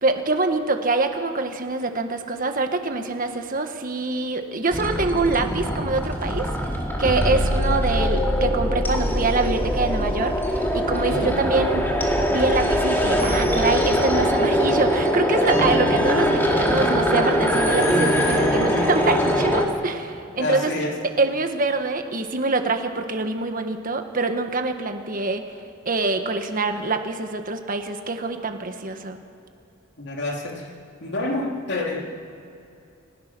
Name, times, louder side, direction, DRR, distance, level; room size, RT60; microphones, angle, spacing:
voice 1, 0.0-6.5 7.0-11.8 12.3-20.7 21.2-25.4 25.8-29.2, right 3 dB, 40° right, 6 dB, 1.5 m, -25 dB
sound 1, 4.7-19.7, equal, 10° left, 2.4 m, -22 dB
voice 2, 11.0-11.4 20.4-21.0 30.0-30.7 31.0-32.1, left 2 dB, 55° left, 0 dB, 3.1 m, -28 dB
30.0 x 17.0 x 6.2 m, 2.8 s
head